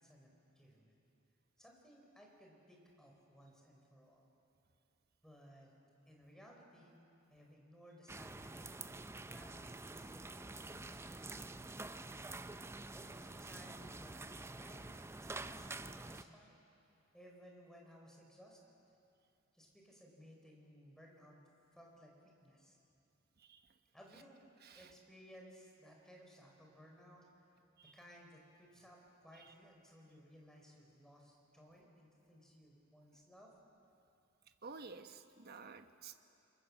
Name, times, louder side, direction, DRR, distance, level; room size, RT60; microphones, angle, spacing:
voice 1, 0.0-1.0 1.6-4.2 5.2-5.7 6.1-7.0 7.3-12.2 12.9-14.9 15.2-16.6 17.1-18.6 19.5-21.4 21.7-22.8 23.9-24.4 24.7-27.3 27.9-33.5, equal, 5° left, -1 dB, 4.5 m, -60 dB
sound 1, 8.1-16.2, right 2 dB, 15° right, 0.5 m, -48 dB
voice 2, 34.6-36.1, right 4 dB, 50° right, 8 dB, 1.1 m, -52 dB
28.5 x 23.5 x 7.4 m, 2.7 s
head